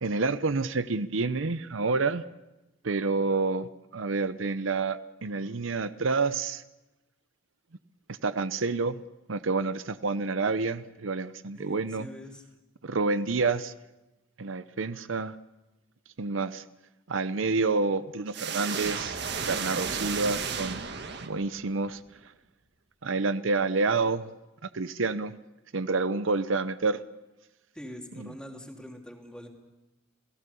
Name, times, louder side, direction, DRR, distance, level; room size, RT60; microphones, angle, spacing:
voice 1, 0.0-2.2 2.8-6.6 8.2-9.0 9.3-12.1 12.8-13.7 14.4-15.3 16.2-16.6 17.1-20.8 21.2-22.0 23.0-24.2 24.7-25.4 25.7-27.0 28.2-28.3, right 3 dB, 75° right, 14 dB, 0.7 m, -28 dB
voice 2, 11.5-12.4 27.7-29.5, left 1 dB, 5° left, 1 dB, 2.9 m, -44 dB
sound 1, 18.3-21.7, right 6 dB, 60° right, 1.7 m, -33 dB
29.0 x 17.5 x 6.9 m, 1.0 s
head